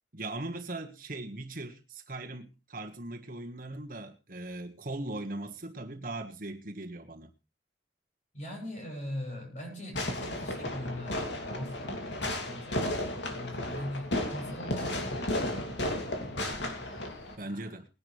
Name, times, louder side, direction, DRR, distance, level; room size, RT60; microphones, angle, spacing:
voice 1, 0.1-7.3 17.4-17.8, right 2 dB, 50° right, 1.6 m, -39 dB
voice 2, 8.3-15.4 15.7-16.4 17.4-17.8, left 1 dB, 45° left, 7.5 m, -42 dB
Fireworks, 9.9-17.4, left 1 dB, 85° left, 2.8 m, -34 dB
20.5 x 11.0 x 3.4 m
head